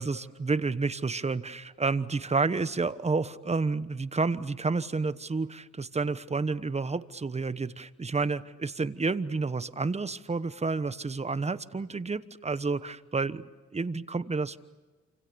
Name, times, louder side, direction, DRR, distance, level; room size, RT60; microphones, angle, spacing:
voice 1, 0.0-13.4 13.7-14.6, right 4 dB, 20° right, 14 dB, 1.1 m, -30 dB
28.5 x 26.5 x 7.0 m, 1.2 s
cardioid pair, 90°, 30 cm